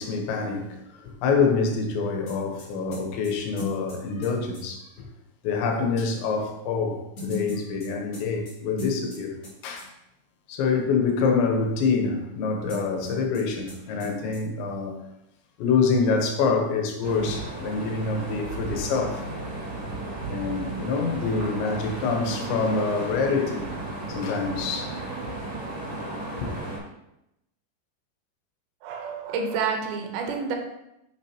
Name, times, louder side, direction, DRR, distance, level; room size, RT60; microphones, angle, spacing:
voice 1, 0.0-5.1 5.4-9.4 9.6-9.9 10.5-15.0 15.6-19.2 20.3-23.7 24.1-24.9 26.4-26.6, left 4 dB, 90° left, 3.4 m, -26 dB
sound 1, 2.3-4.6 7.2-9.5 9.8-9.9 12.7-13.4 13.7-13.8 14.0-14.4, left 2 dB, 40° left, 3.3 m, -36 dB
sound 2, 17.0-26.8, right 2 dB, 40° right, 3.0 m, -34 dB
voice 2, 28.8-30.6, right 5 dB, 90° right, 3.3 m, -29 dB
8.8 x 6.9 x 2.9 m
omnidirectional pair, 5.0 m